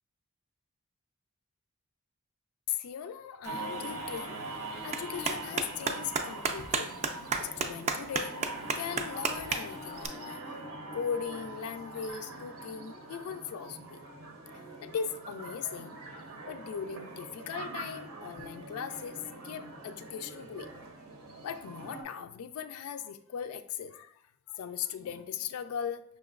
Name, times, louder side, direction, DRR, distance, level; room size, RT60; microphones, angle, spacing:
voice 1, 2.7-6.9 7.4-8.4 8.7-10.6 10.9-14.0 14.8-16.0 16.5-19.2 19.4-20.7 21.4-26.0, left 7 dB, 85° left, 11 dB, 0.3 m, -39 dB
Clapping, 3.4-10.1, right 4 dB, 30° right, 0.3 m, -35 dB
sound 1, 3.4-22.0, right 2 dB, 90° right, 0.7 m, -43 dB
5.7 x 2.9 x 2.4 m, 0.71 s
head